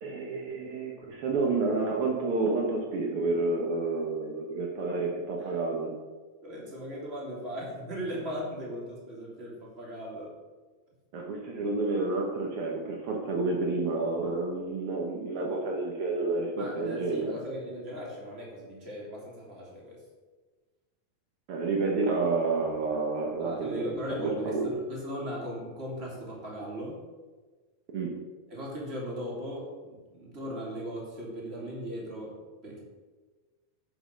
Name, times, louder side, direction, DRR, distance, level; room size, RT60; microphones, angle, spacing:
voice 1, 0.0-5.9 11.1-17.3 21.5-24.7 27.9-28.1, right 3 dB, 80° right, 0 dB, 1.2 m, -30 dB
voice 2, 4.8-5.5 6.4-10.3 16.6-20.0 23.4-27.0 28.5-32.3 32.6-32.8, equal, 20° right, -4 dB, 2.3 m, -38 dB
9.6 x 5.1 x 6.4 m, 1.3 s
omnidirectional pair, 4.1 m